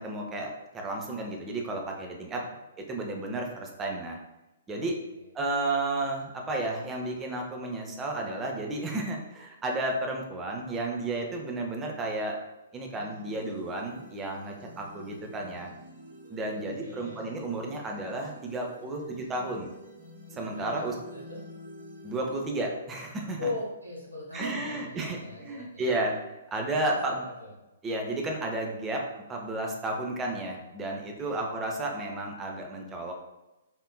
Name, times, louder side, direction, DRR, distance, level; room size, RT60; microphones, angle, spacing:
voice 1, 0.0-2.4 2.8-4.2 4.7-5.0 5.3-12.4 12.7-15.7 16.3-19.7 20.3-20.9 22.0-23.5 24.3-26.2 26.5-27.2 27.8-29.0 29.3-33.1, right 2 dB, 15° right, 1 dB, 0.5 m, -32 dB
voice 2, 4.8-5.2 16.8-17.3 20.4-20.8 21.1-21.4 23.4-26.0 26.9-27.5 31.2-31.5, left 2 dB, 85° right, -6 dB, 1.4 m, -40 dB
sound 1, 12.8-22.4, left 1 dB, 50° right, 1.4 m, -48 dB
3.5 x 2.5 x 2.2 m, 0.99 s
figure-of-eight pair, 120°, 0 cm